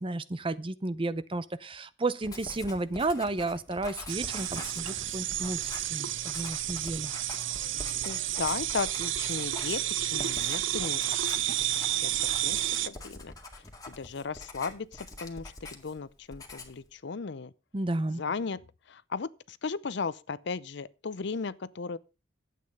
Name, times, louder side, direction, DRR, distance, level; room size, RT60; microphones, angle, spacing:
voice 1, 0.0-7.1 17.7-18.2, right 2 dB, 25° right, 0.6 m, -32 dB
Writing, 2.2-16.0 16.3-16.9, left 3 dB, 20° left, 2.0 m, -45 dB
sound 1, 4.1-12.9, right 12 dB, 65° right, 0.7 m, -31 dB
voice 2, 8.0-12.6 12.8-13.3 13.9-17.5 18.1-18.6 18.9-22.0, left 5 dB, 60° left, 0.6 m, -36 dB
12.0 x 8.5 x 5.5 m
head